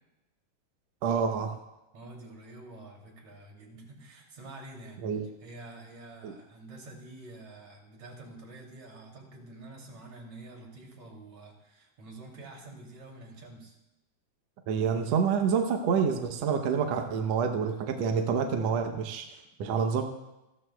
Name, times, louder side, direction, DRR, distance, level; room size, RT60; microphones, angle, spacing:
voice 1, 1.0-1.6 5.0-5.2 6.2-6.3 14.7-19.2 19.6-20.0, right 6 dB, 75° right, 4 dB, 1.6 m, -27 dB
voice 2, 1.9-13.8, right 2 dB, 50° right, 0 dB, 3.9 m, -48 dB
28.5 x 12.5 x 2.3 m, 0.97 s
omnidirectional pair, 4.0 m